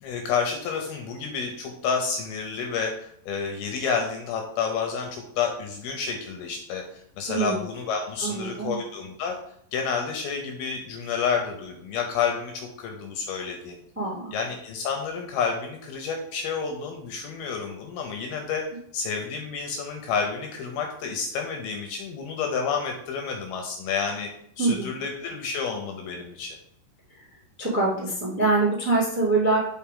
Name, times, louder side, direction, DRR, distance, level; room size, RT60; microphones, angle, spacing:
voice 1, 0.0-9.3 9.7-13.8 14.3-18.6 18.9-24.3 24.6-26.6, left 6 dB, 75° left, 2 dB, 2.4 m, -30 dB
voice 2, 7.3-7.6 8.2-8.8 13.9-14.3 24.6-24.9 27.6-29.6, right 3 dB, 10° right, -5 dB, 0.6 m, -24 dB
5.7 x 4.7 x 3.7 m, 0.68 s
omnidirectional pair, 5.0 m